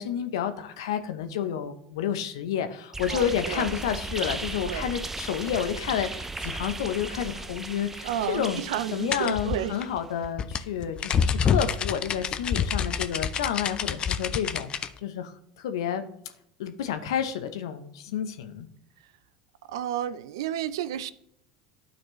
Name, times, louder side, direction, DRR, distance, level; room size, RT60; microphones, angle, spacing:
voice 1, 0.0-8.6 8.9-14.7 15.0-16.1 16.6-18.7, left 9 dB, 75° left, 0.7 m, -30 dB
sound 1, 2.9-10.0, right 3 dB, 15° right, 0.6 m, -36 dB
voice 2, 3.1-3.7 4.6-4.9 8.0-9.8 19.7-21.1, right 11 dB, 75° right, 0.4 m, -31 dB
sound 2, 9.1-14.9, left 7 dB, 40° left, 0.5 m, -27 dB
12.0 x 4.3 x 3.1 m
hypercardioid pair, 75°, 3 cm